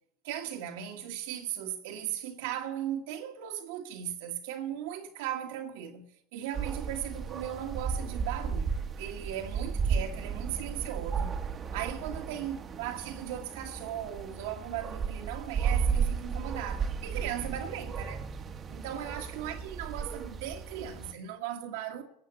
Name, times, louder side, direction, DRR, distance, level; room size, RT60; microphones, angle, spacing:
voice 1, 0.2-11.4 11.7-18.2 18.7-22.0, right 10 dB, 70° right, 1.6 m, -37 dB
sound 1, 6.5-21.1, right 6 dB, 35° right, 1.3 m, -34 dB
18.0 x 7.5 x 7.0 m
hypercardioid pair, 85°, 0 cm